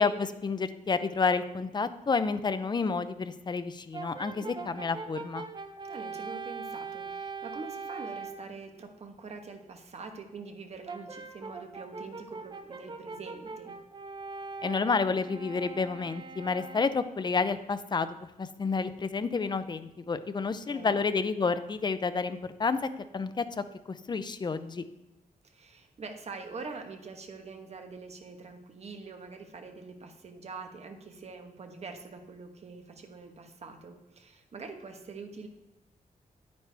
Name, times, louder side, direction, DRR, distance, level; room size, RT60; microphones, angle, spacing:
voice 1, 0.0-5.4 14.6-18.1 18.4-22.8 23.1-23.4 23.9-24.8, left 4 dB, 30° left, 12 dB, 0.5 m, -30 dB
Brass instrument, 3.9-8.5 10.9-17.2, right 4 dB, 30° right, 0.7 m, -41 dB
voice 2, 4.3-4.7 5.9-13.8 20.6-21.0 25.4-35.5, right 4 dB, 50° right, 5 dB, 1.2 m, -44 dB
9.5 x 9.4 x 3.4 m, 0.98 s
wide cardioid pair, 140°, 14 cm